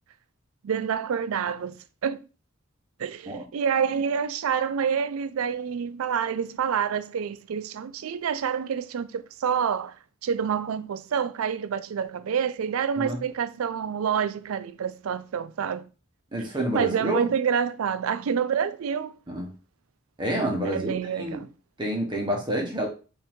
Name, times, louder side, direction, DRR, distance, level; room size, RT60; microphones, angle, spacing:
voice 1, 0.6-2.2 3.0-10.0 10.2-15.9 16.7-19.1 20.6-21.5, right 7 dB, 85° right, 0.4 m, -27 dB
voice 2, 16.3-17.3 19.3-19.5 20.2-20.9 21.2-21.4 21.8-22.9, right 1 dB, 20° right, 1.1 m, -28 dB
5.4 x 2.6 x 3.6 m
head